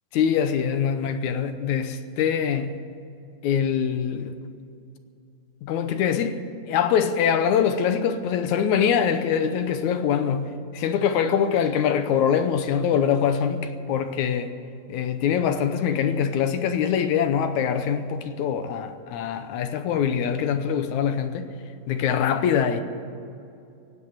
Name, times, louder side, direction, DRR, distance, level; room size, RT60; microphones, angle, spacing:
voice 1, 0.1-2.9 3.4-4.3 5.6-6.4 6.7-14.5 14.9-21.5 21.9-22.8, left 8 dB, 75° left, 2.0 m, -23 dB
16.5 x 9.0 x 9.5 m
omnidirectional pair, 3.8 m